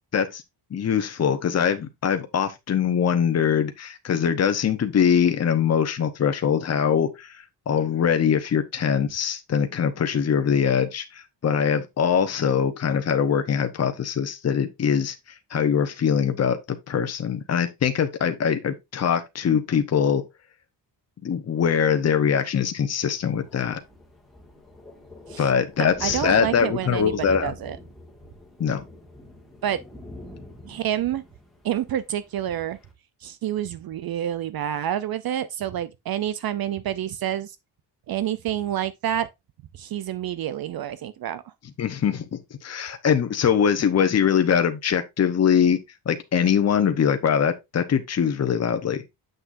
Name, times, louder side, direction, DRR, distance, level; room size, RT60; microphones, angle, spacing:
voice 1, 0.7-7.3 7.7-15.1 15.5-20.2 21.2-23.8 25.4-27.5 28.6-28.8 41.8-42.2 42.6-45.8 46.1-49.0, left 7 dB, 35° left, 0.9 m, -22 dB
Thunder, 22.9-32.9, left 1 dB, ahead, 1.8 m, -44 dB
voice 2, 25.8-27.8 29.6-29.8 30.7-31.2 31.6-32.8 33.2-37.6 38.1-39.3 39.8-41.4, right 11 dB, 55° right, 0.6 m, -28 dB
7.9 x 6.1 x 2.6 m
wide cardioid pair, 155°, 42 cm